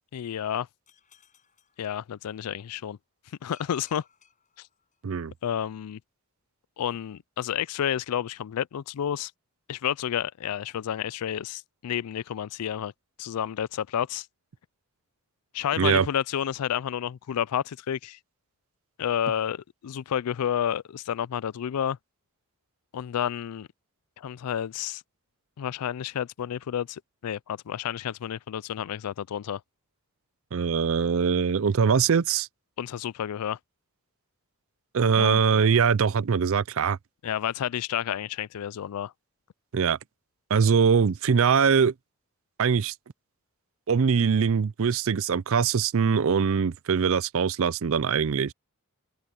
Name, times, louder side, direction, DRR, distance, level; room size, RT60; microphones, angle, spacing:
voice 1, 0.1-0.7 1.8-3.0 3.4-4.0 5.4-6.0 6.8-9.3 9.7-12.9 13.2-14.3 15.5-18.2 19.0-22.0 22.9-23.7 24.2-25.0 25.6-29.6 32.8-33.6 35.1-35.4 37.2-39.1, left 9 dB, 90° left, 0.4 m, -30 dB
sound 1, 0.9-2.6 3.5-5.3, left 7 dB, 35° left, 6.0 m, -61 dB
voice 2, 30.5-32.5 34.9-37.0 39.7-40.0 40.5-41.9 42.6-42.9 43.9-48.5, right 6 dB, 65° right, 0.5 m, -22 dB
open air
head